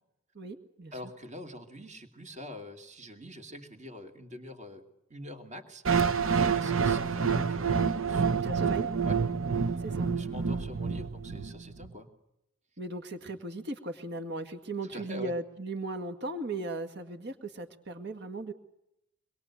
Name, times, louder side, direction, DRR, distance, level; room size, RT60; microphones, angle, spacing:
voice 1, 0.4-0.9 8.4-8.9 9.8-10.1 12.8-18.5, right 2 dB, 55° right, 7 dB, 2.0 m, -37 dB
voice 2, 0.9-5.8 6.2-8.5 8.8-9.2 9.5-12.1 14.8-15.3, left 1 dB, 35° right, 5 dB, 2.8 m, -45 dB
sound 1, 5.8-11.9, right 5 dB, 75° right, 0.9 m, -28 dB
25.5 x 21.5 x 8.4 m, 0.83 s
head